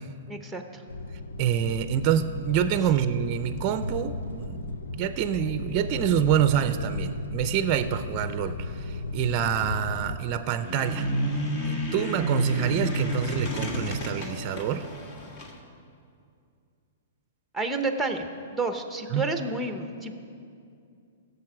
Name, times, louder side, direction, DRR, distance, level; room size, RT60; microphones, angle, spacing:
voice 1, 0.3-0.8 17.5-18.3 18.5-20.1, right 3 dB, ahead, 6 dB, 0.8 m, -30 dB
sound 1, 0.9-10.2, left 2 dB, 90° left, 0.7 m, -35 dB
voice 2, 1.4-11.1 11.7-14.9 19.1-19.2, right 9 dB, 35° right, 11 dB, 0.5 m, -27 dB
sound 2, 10.6-15.5, right 1 dB, 40° left, 1.5 m, -30 dB
16.0 x 6.8 x 4.9 m, 2.4 s
hypercardioid pair, 145°, 0 cm